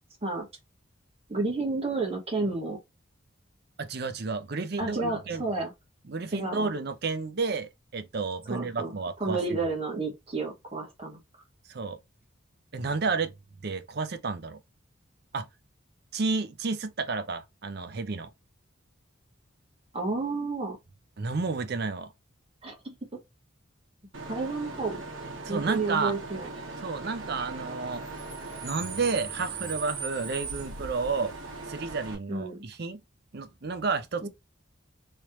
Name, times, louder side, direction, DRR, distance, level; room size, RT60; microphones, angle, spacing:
voice 1, 1.3-2.8 4.8-5.7 6.3-6.7 8.5-11.2 19.9-20.8 22.6-22.9 24.3-25.0 25.5-26.5 32.3-32.6 34.2-34.3, right 3 dB, 30° right, 1.5 m, -31 dB
voice 2, 3.8-5.4 6.1-9.4 11.7-12.0 12.7-13.3 13.6-14.6 15.3-15.5 16.1-18.3 21.2-22.1 25.4-26.2 26.8-28.0 28.6-31.3 31.7-33.0 33.3-34.3, right 4 dB, 50° right, 0.5 m, -31 dB
Bus / Idling / Screech, 24.1-32.1, right 3 dB, 80° right, 1.3 m, -39 dB
3.2 x 3.1 x 2.9 m
head